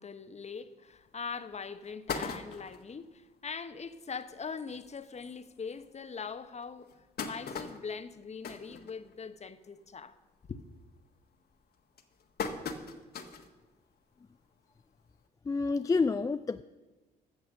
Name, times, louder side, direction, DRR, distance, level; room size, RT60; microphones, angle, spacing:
voice 1, 0.0-7.0 7.2-10.2 10.5-10.6, left 5 dB, 35° left, 1.0 m, -42 dB
sound 1, 1.0-1.1 1.5-1.6 1.8-2.9 3.5-3.6 3.8-3.9 4.3-4.4 5.2-5.3 5.8-5.9 6.6-9.5 9.8-10.2 10.5-10.9 11.5-13.5 14.0-14.1 15.3-15.4, left 5 dB, 50° left, 1.4 m, -39 dB
voice 2, 15.5-16.6, left 4 dB, 15° left, 0.4 m, -28 dB
14.5 x 6.8 x 6.5 m
hypercardioid pair, 50°, 20 cm